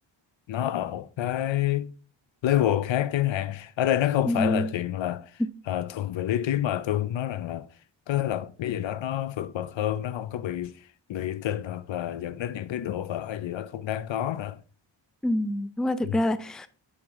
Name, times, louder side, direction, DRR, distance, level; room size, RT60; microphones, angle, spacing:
voice 1, 0.5-1.9 2.4-5.3 5.7-7.7 8.1-10.8 11.1-14.6 16.0-16.2, left 12 dB, 70° left, 0.6 m, -28 dB
voice 2, 4.2-4.7 15.2-16.7, left 1 dB, ahead, 0.4 m, -26 dB
7.6 x 5.7 x 3.5 m
cardioid pair, 55°, 47 cm